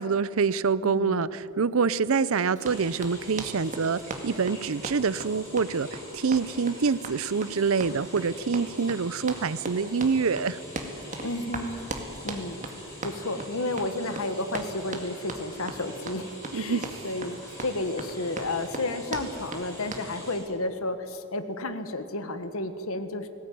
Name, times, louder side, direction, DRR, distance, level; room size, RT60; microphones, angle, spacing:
voice 1, 0.0-10.6 16.5-16.8, right 5 dB, 65° right, 18 dB, 0.6 m, -26 dB
voice 2, 0.8-1.3 11.2-11.8 12.2-12.6 13.0-23.3, left 2 dB, 70° left, 10 dB, 1.4 m, -32 dB
Run, 2.5-20.1, right 2 dB, 35° right, 2.1 m, -38 dB
sound 1, 2.6-20.4, equal, 15° left, 7.2 m, -45 dB
19.5 x 17.0 x 9.4 m, 2.9 s
head